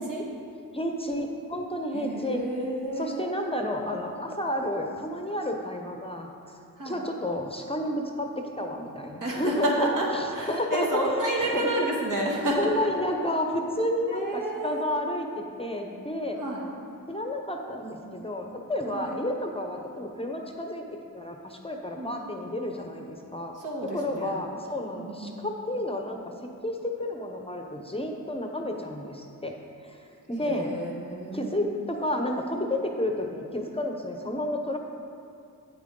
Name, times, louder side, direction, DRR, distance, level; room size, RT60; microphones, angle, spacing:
voice 1, 0.7-2.4 3.0-6.3 6.8-10.9 11.4-11.6 12.6-16.4 17.1-20.8 21.1-23.5 23.9-26.2 26.6-29.5 29.8-30.0 30.3-30.7 31.3-34.8, left 1 dB, 15° left, 3 dB, 0.7 m, -31 dB
voice 2, 1.9-3.3 6.8-7.0 9.2-12.9 14.1-15.0 16.3-16.6 18.9-19.1 21.9-22.3 23.5-24.4 24.9-25.5 30.4-31.8, right 1 dB, 65° right, -3 dB, 1.7 m, -30 dB
8.4 x 7.5 x 3.7 m, 2.5 s
cardioid pair, 70°, 34 cm